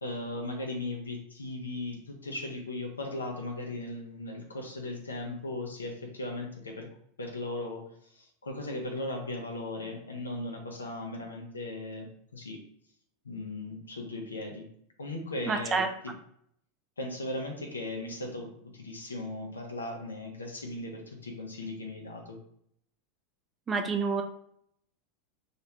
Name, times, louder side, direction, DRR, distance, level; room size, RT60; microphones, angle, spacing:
voice 1, 0.0-6.9 7.2-12.6 13.2-14.7 15.0-16.1 17.0-22.4, left 2 dB, 85° left, 2 dB, 0.6 m, -37 dB
voice 2, 15.5-15.9 23.7-24.2, right 4 dB, 25° right, 5 dB, 0.5 m, -28 dB
3.1 x 2.5 x 2.9 m, 0.69 s
figure-of-eight pair, 85°, 0 cm